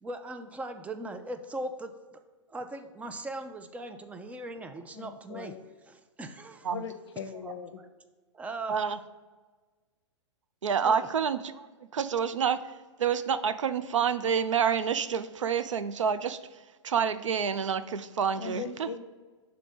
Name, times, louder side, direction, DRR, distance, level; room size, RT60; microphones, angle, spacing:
voice 1, 0.0-2.2 2.5-5.6 5.9-6.7 7.4-7.9 8.3-9.0 10.8-11.1, right 2 dB, 10° right, 7 dB, 0.4 m, -39 dB
voice 2, 4.9-5.6 6.7-7.8 18.4-19.0, left 6 dB, 60° left, 8 dB, 0.7 m, -39 dB
voice 3, 8.7-9.0 10.6-18.9, right 7 dB, 80° right, 12 dB, 0.4 m, -28 dB
6.2 x 3.4 x 5.0 m, 1.3 s
hypercardioid pair, 115°, 16 cm